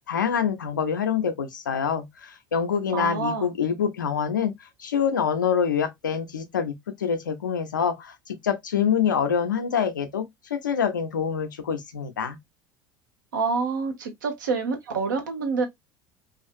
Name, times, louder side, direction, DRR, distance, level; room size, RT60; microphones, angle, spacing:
voice 1, 0.1-4.5 4.8-12.4, left 7 dB, 85° left, 0.5 m, -26 dB
voice 2, 2.9-3.5 13.3-15.7, right 4 dB, 75° right, 0.8 m, -27 dB
2.5 x 2.4 x 2.4 m
figure-of-eight pair, 70°, 10 cm